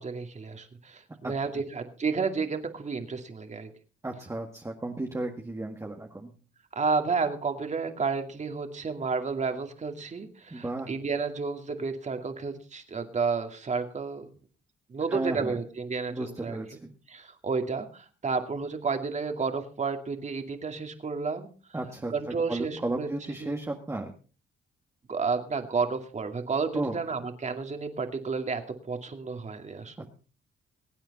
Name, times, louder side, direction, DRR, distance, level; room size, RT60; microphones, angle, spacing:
voice 1, 0.0-3.7 6.8-14.3 14.9-16.6 17.1-21.5 22.1-23.1 23.4-23.5 25.1-28.6 28.9-30.1, right 4 dB, 35° right, 6 dB, 2.4 m, -31 dB
voice 2, 4.0-6.3 10.5-10.9 15.1-15.6 16.1-16.9 21.7-24.1 26.7-27.0 30.0-30.1, right 2 dB, 15° right, 1 dB, 1.8 m, -34 dB
22.5 x 9.1 x 4.2 m, 0.37 s
cardioid pair, 90°, 20 cm